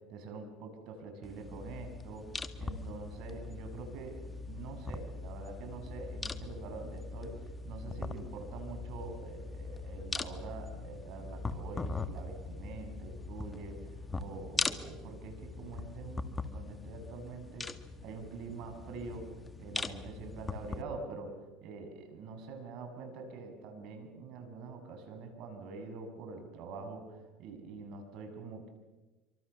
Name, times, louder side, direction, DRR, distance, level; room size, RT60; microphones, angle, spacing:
voice 1, 0.1-17.7 18.0-19.3 19.6-28.7, right 4 dB, 65° right, 5 dB, 6.9 m, -45 dB
sound 1, 1.2-20.8, left 3 dB, 15° left, 1.7 m, -41 dB
27.0 x 25.0 x 7.0 m, 1.2 s
supercardioid pair, 110°, 0 cm